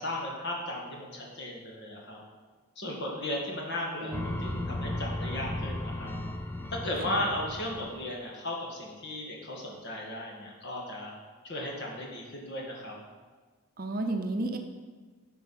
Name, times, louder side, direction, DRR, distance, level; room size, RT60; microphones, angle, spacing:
voice 1, 0.0-2.2 2.8-6.2 6.7-11.1 11.4-13.0, left 1 dB, 50° left, -1 dB, 1.8 m, -36 dB
voice 2, 4.0-4.7 7.1-7.2 13.8-14.6, right 2 dB, 40° right, 4 dB, 0.7 m, -33 dB
sound 1, 4.1-8.2, left 1 dB, 10° left, 0.4 m, -35 dB
10.0 x 4.6 x 5.7 m, 1.4 s
head